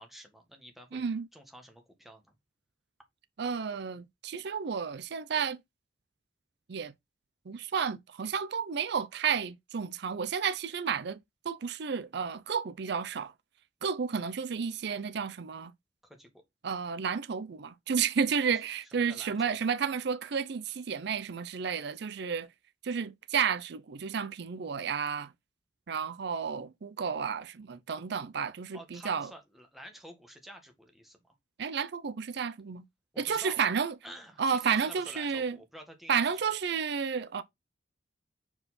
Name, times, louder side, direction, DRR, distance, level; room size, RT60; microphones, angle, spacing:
voice 1, 0.0-1.0 1.3-2.3 16.0-16.4 19.0-19.7 28.7-31.2 33.1-33.7 34.0-36.2, equal, ahead, 1.6 m, -50 dB
voice 2, 0.9-1.3 3.4-5.6 6.7-6.9 7.5-11.2 11.4-13.3 13.8-15.7 16.6-22.5 22.8-25.3 25.9-29.3 31.6-32.8 33.2-33.9 34.4-35.6 36.1-37.4, right 6 dB, 65° right, 0.5 m, -31 dB
5.2 x 4.8 x 4.1 m
head